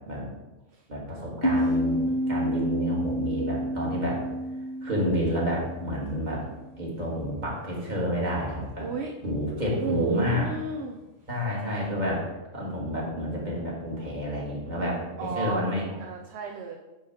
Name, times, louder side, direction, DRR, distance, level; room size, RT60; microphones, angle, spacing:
voice 1, 0.9-4.2 4.8-6.4 6.8-8.9 9.2-10.5 11.3-12.3 12.5-15.8, equal, 35° right, -4 dB, 1.8 m, -29 dB
sound 1, 1.4-6.8, equal, 20° left, 0.8 m, -29 dB
voice 2, 8.8-9.1 9.7-11.0 14.7-15.6 16.0-16.8, right 5 dB, 65° right, 1 dB, 0.8 m, -33 dB
8.9 x 3.1 x 4.7 m, 1.1 s
omnidirectional pair, 1.3 m